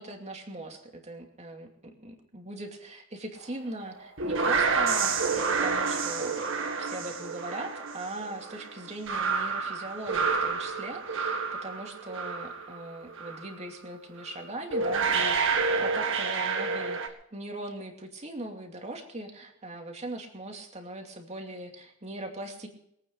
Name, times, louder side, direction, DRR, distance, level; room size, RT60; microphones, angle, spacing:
voice 1, 0.0-6.5 6.8-22.7, right 1 dB, 30° right, 2 dB, 2.6 m, -40 dB
sound 1, 3.9-12.8 13.1-13.5 14.3-14.4 14.7-17.1, right 4 dB, 65° right, 1.9 m, -29 dB
22.5 x 9.2 x 5.4 m, 0.73 s
head